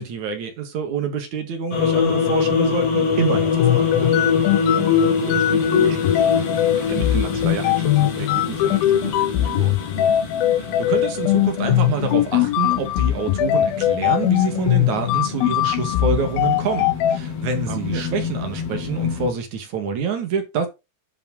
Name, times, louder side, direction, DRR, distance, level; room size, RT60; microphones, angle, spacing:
voice 1, 0.0-4.2 10.6-20.7, right 5 dB, 50° right, 3.2 m, -27 dB
sound 1, 1.7-19.3, left 6 dB, 40° left, 3.0 m, -25 dB
sound 2, 3.5-17.2, left 13 dB, 75° left, 2.4 m, -20 dB
voice 2, 5.2-10.2 17.7-18.0, right 11 dB, 80° right, 3.2 m, -34 dB
11.0 x 6.8 x 4.0 m
omnidirectional pair, 4.7 m